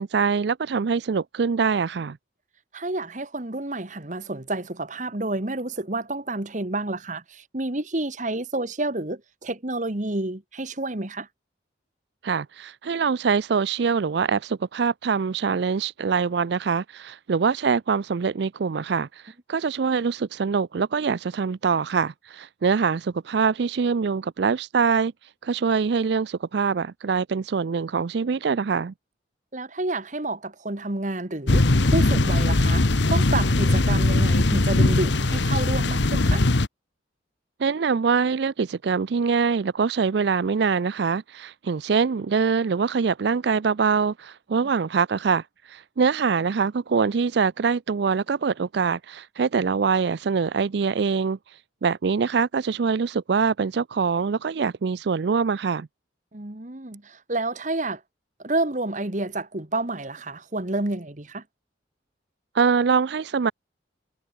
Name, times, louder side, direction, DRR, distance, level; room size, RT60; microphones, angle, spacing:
voice 1, 0.0-2.2 12.2-28.9 37.6-55.9 62.5-63.5, right 5 dB, 60° right, 0.4 m, -24 dB
voice 2, 2.7-11.3 29.5-36.4 56.3-58.0 58.4-61.4, right 2 dB, 40° right, 1.5 m, -29 dB
sound 1, 31.5-36.7, left 2 dB, 70° left, 1.2 m, -20 dB
head